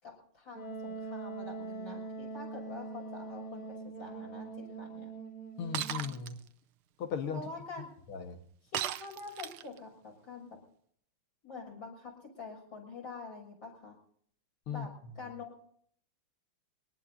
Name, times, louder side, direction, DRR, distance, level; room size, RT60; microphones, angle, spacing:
voice 1, 0.0-5.1 7.3-7.8 8.7-10.6 11.4-14.0 14.7-14.9 15.2-15.6, left 3 dB, 60° left, -1 dB, 7.0 m, -46 dB
Wind instrument woodwind instrument, 0.5-6.1, right 3 dB, 40° left, 3.8 m, -42 dB
voice 2, 5.6-6.5 7.0-7.5 8.1-8.4 14.7-15.2, left 6 dB, 85° left, 5 dB, 2.3 m, -37 dB
Shatter, 5.7-6.3 8.7-9.8, right 11 dB, 80° right, 1.6 m, -36 dB
23.0 x 19.0 x 2.7 m, 0.62 s
omnidirectional pair, 2.3 m